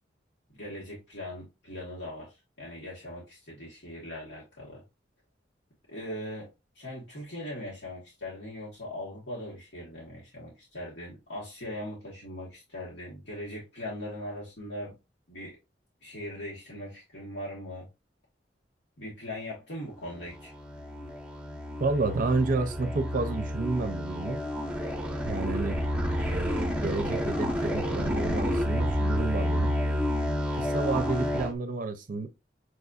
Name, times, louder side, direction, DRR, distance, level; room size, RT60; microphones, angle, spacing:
voice 1, 0.6-4.8 5.9-6.5 6.7-14.9 15.3-15.6 16.0-17.9 19.0-20.5 25.5-25.7, left 1 dB, 85° left, 1.5 m, -40 dB
sound 1, 20.1-31.5, equal, 5° right, 0.7 m, -30 dB
voice 2, 21.8-24.4 25.2-25.8 26.3-29.7 30.5-32.3, right 3 dB, 50° right, 0.5 m, -30 dB
6.2 x 2.5 x 2.3 m
head